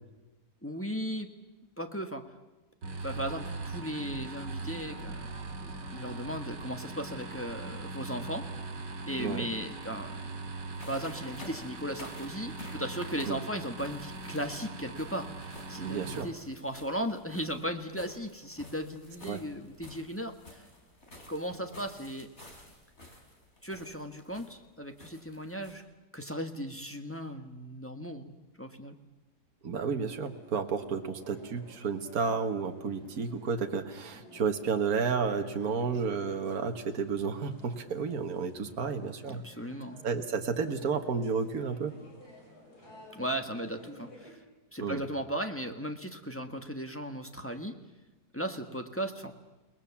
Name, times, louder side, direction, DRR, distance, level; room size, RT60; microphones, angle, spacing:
voice 1, 0.6-1.3 1.8-2.3 3.0-8.5 9.1-10.2 10.9-20.7 21.3-22.3 23.6-25.8 26.1-29.0 39.3-40.0 43.1-44.4 44.7-47.8 48.3-49.3, equal, 10° left, 4 dB, 1.4 m, -37 dB
sound 1, 2.8-16.2, right 3 dB, 90° right, 3.1 m, -41 dB
sound 2, 10.7-25.8, left 1 dB, 40° left, 4.3 m, -51 dB
voice 2, 15.8-16.3 19.2-19.4 29.6-39.4 40.0-41.9 44.8-45.0, right 5 dB, 60° right, 6 dB, 1.9 m, -31 dB
sound 3, 30.0-44.3, left 1 dB, 65° left, 6.5 m, -54 dB
29.5 x 19.5 x 7.2 m, 1.1 s
omnidirectional pair, 1.8 m